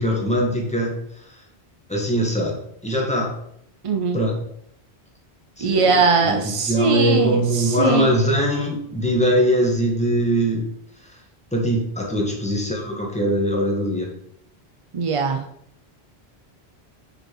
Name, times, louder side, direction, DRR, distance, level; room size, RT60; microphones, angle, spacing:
voice 1, 0.0-1.3 1.9-3.3 4.1-4.4 5.6-10.7 11.1-11.2 11.5-14.1, equal, 5° left, -2 dB, 1.4 m, -22 dB
voice 2, 3.8-4.2 5.6-8.2 14.9-15.4, right 5 dB, 45° right, 5 dB, 0.4 m, -21 dB
5.1 x 4.6 x 4.5 m, 0.70 s
omnidirectional pair, 1.1 m